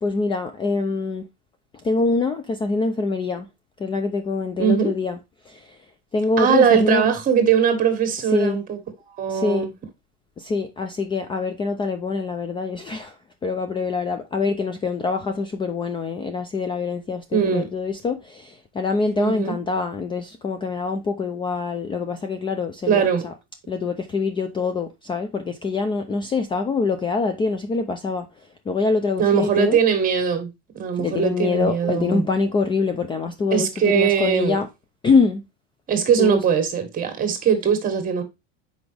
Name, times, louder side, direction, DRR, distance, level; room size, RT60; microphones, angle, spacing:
voice 1, 0.0-1.3 1.8-3.5 3.8-5.2 5.5-5.8 6.1-7.1 8.3-8.6 9.3-9.7 10.4-23.3 23.7-28.3 28.7-29.8 31.0-34.7 35.0-35.4 36.2-36.4, left 4 dB, 15° left, 0.4 m, -24 dB
voice 2, 4.6-4.9 6.4-8.8 9.2-9.7 17.3-17.7 19.2-19.5 22.9-23.3 29.2-32.2 33.5-34.6 35.9-38.2, right 7 dB, 30° right, 1.7 m, -20 dB
6.0 x 4.9 x 3.3 m
cardioid pair, 150°, 30 cm